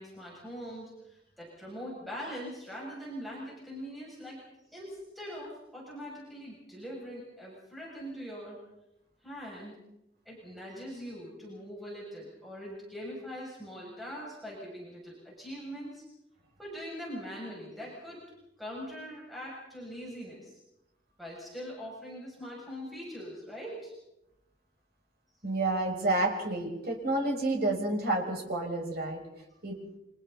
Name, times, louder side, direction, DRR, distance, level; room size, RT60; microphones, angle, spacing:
voice 1, 0.0-4.4 4.7-8.6 9.2-9.8 10.3-16.0 16.6-18.2 18.6-20.6 21.2-23.9, equal, ahead, -5 dB, 6.9 m, -42 dB
voice 2, 25.4-29.2 29.6-29.8, right 2 dB, 60° right, 1 dB, 6.1 m, -29 dB
30.0 x 26.5 x 4.1 m, 0.91 s
head